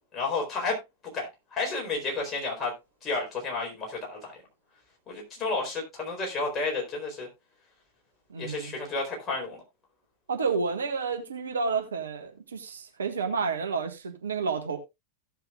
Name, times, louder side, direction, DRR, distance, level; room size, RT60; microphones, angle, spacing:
voice 1, 0.1-0.8 1.1-2.7 3.0-4.4 5.1-7.3 8.3-9.6, left 3 dB, 25° left, 4.3 m, -31 dB
voice 2, 8.3-8.7 10.3-14.8, right 5 dB, 70° right, 1.8 m, -30 dB
16.5 x 6.7 x 2.5 m
figure-of-eight pair, 90°, 0 cm